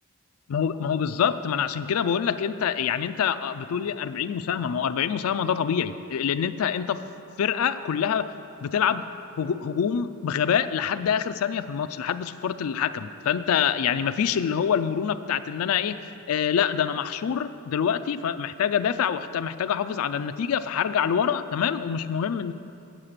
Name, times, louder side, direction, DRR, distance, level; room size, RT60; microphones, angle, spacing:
voice 1, 0.5-7.0 7.4-8.3 8.6-9.0 9.4-22.5, left 8 dB, 90° left, 12 dB, 0.4 m, -26 dB
8.5 x 7.4 x 6.6 m, 2.6 s
head